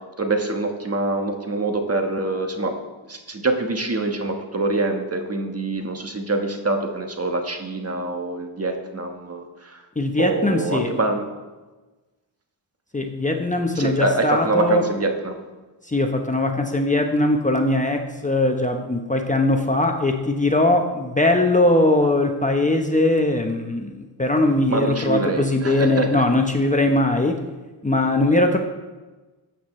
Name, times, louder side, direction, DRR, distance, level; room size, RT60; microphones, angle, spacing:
voice 1, 0.2-2.7 3.1-9.8 10.2-11.3 13.7-15.4 24.7-26.2, right 2 dB, 30° right, 4 dB, 1.4 m, -25 dB
voice 2, 10.0-10.9 12.9-14.8 15.8-27.4 27.8-28.6, left 2 dB, 15° left, 4 dB, 1.0 m, -20 dB
13.5 x 8.5 x 3.2 m, 1.2 s
cardioid pair, 70°, 45 cm